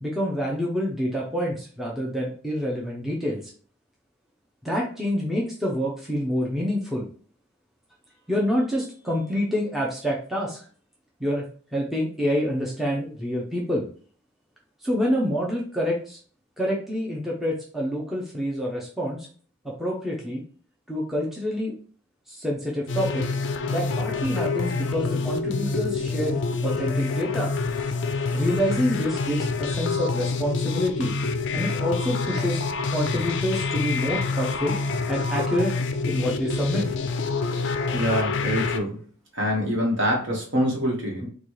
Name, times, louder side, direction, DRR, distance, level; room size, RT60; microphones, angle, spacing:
voice 1, 0.0-3.4 4.6-7.0 8.3-10.6 11.2-11.4 11.7-13.9 14.8-16.2 16.6-19.3 19.6-20.4 20.9-21.7 22.3-23.3 23.7-27.5 28.3-31.1 31.5-32.6 32.9-34.8 35.1-35.7 36.1-36.9, equal, ahead, -3 dB, 0.5 m, -27 dB
sound 1, 22.9-38.8, left 4 dB, 55° left, 0.4 m, -27 dB
voice 2, 37.9-39.0 39.3-41.3, equal, 55° right, -1 dB, 1.2 m, -25 dB
4.1 x 2.3 x 3.1 m, 0.43 s
head